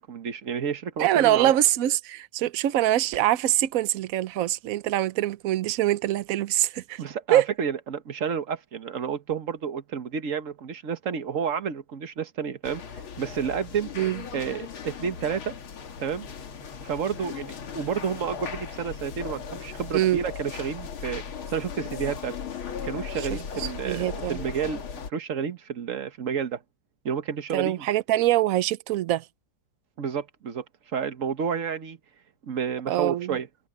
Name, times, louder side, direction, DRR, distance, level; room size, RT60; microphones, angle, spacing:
voice 1, 0.0-1.5 7.0-12.8 13.2-13.9 14.3-15.5 16.0-16.3 16.8-22.3 22.8-26.6 27.0-27.9 30.0-30.6 30.9-32.0 32.5-33.5, right 7 dB, 45° right, 1.4 m, -30 dB
voice 2, 1.0-7.0 7.3-7.5 14.0-14.2 19.9-20.2 23.6-24.4 27.5-29.2 32.9-33.4, right 13 dB, 85° right, 0.7 m, -24 dB
sound 1, 12.6-25.1, left 6 dB, 85° left, 2.7 m, -37 dB
omnidirectional pair, 2.2 m